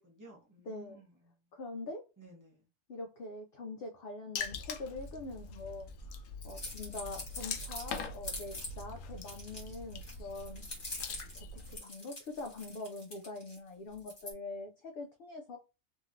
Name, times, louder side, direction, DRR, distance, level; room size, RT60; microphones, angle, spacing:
voice 1, 0.0-1.5 2.2-2.7, right 1 dB, 15° right, -2 dB, 0.9 m, -56 dB
voice 2, 0.7-1.0 1.5-2.0 2.9-10.6 11.3-11.5 11.7-15.6, left 2 dB, 60° left, 3 dB, 0.6 m, -44 dB
Water / Splash splatter, 4.4-11.8, left 4 dB, 80° left, 1.0 m, -43 dB
sound 1, 4.8-10.4 10.8-11.1 12.3-12.6 13.8-14.2, left 4 dB, 85° right, 1.2 m, -53 dB
sound 2, 6.4-8.8 9.2-13.6 14.0-14.3, left 2 dB, 45° left, 1.4 m, -45 dB
2.9 x 2.8 x 2.5 m, 0.29 s
omnidirectional pair, 1.3 m